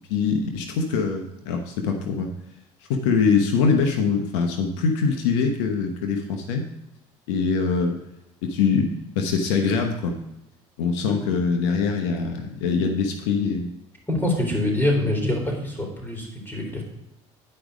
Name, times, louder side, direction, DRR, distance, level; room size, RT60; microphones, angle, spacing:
voice 1, 0.1-2.3 2.9-6.7 7.3-8.0 8.4-10.2 10.8-13.7, left 5 dB, 85° left, 4 dB, 1.1 m, -23 dB
voice 2, 14.1-16.8, left 1 dB, 15° left, 0 dB, 3.8 m, -25 dB
10.5 x 5.2 x 5.1 m, 0.87 s
supercardioid pair, 85°, 15 cm